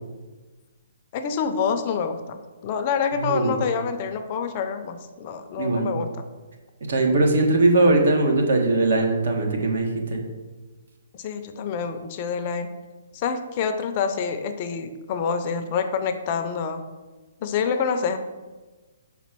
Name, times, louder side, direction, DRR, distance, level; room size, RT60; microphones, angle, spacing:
voice 1, 1.1-2.4 2.6-6.2 11.2-12.7 13.1-16.8 17.4-18.2, left 6 dB, 30° left, 7 dB, 0.5 m, -27 dB
voice 2, 3.1-3.6 5.6-5.9 6.9-10.2, right 2 dB, 65° right, 2 dB, 1.4 m, -20 dB
5.7 x 4.2 x 6.0 m, 1.3 s
hypercardioid pair, 160°, 0 cm